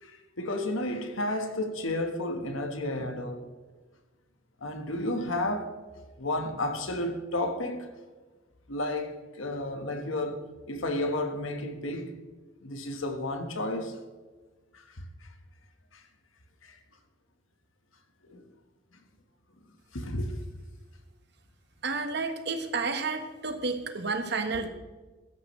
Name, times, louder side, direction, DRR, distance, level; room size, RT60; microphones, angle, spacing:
voice 1, 0.0-3.4 4.6-5.8 6.2-7.9 8.7-10.4 10.7-12.1 12.6-14.0 14.7-15.3 15.9-16.0 16.6-16.8 18.3-18.4 19.9-20.3, left 1 dB, 90° left, 1.5 m, -32 dB
voice 2, 21.8-24.7, right 4 dB, 55° right, 1.4 m, -31 dB
16.0 x 13.5 x 3.3 m
head